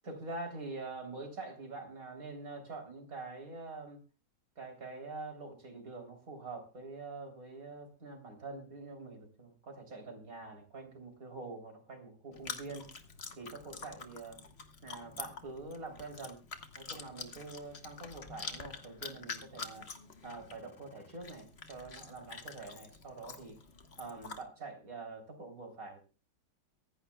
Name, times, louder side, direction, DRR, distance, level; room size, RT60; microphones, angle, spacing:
voice 1, 0.0-4.0 4.6-12.9 13.4-14.4 14.8-16.4 16.8-19.9 20.2-23.6 24.0-26.0, right 3 dB, 50° right, 4 dB, 3.8 m, -45 dB
Chewing mastication, 12.3-24.4, left 4 dB, 35° left, 1.5 m, -47 dB
23.5 x 11.5 x 2.3 m, 0.33 s
omnidirectional pair, 2.0 m